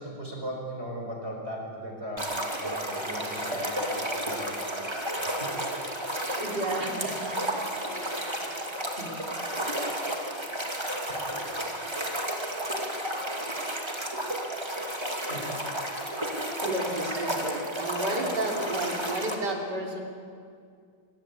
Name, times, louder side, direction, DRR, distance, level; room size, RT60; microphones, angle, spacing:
voice 1, 0.0-4.5 5.2-5.5 9.0-9.2 15.3-15.5, equal, 35° right, 0 dB, 5.0 m, -38 dB
sound 1, 2.2-19.3, right 1 dB, 15° right, 2.5 m, -32 dB
voice 2, 6.4-7.4 16.6-20.0, right 1 dB, 60° right, 1 dB, 4.0 m, -32 dB
27.5 x 20.5 x 8.6 m, 2.3 s
omnidirectional pair, 2.0 m